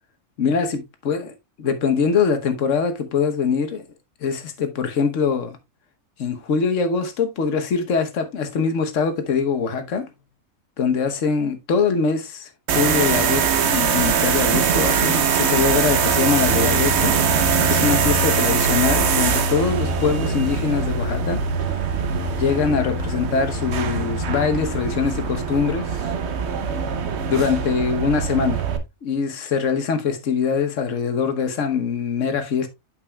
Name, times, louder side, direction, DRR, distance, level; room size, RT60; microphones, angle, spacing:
voice 1, 0.4-0.8 1.0-1.3 1.6-3.8 4.2-5.6 6.2-10.1 10.8-12.5 12.7-17.1 17.7-21.4 22.4-26.1 27.3-28.6 29.0-32.7, left 5 dB, 65° left, 1.4 m, -23 dB
sound 1, 12.7-28.8, right 5 dB, 60° right, 1.0 m, -22 dB
8.7 x 6.7 x 2.3 m
omnidirectional pair, 1.4 m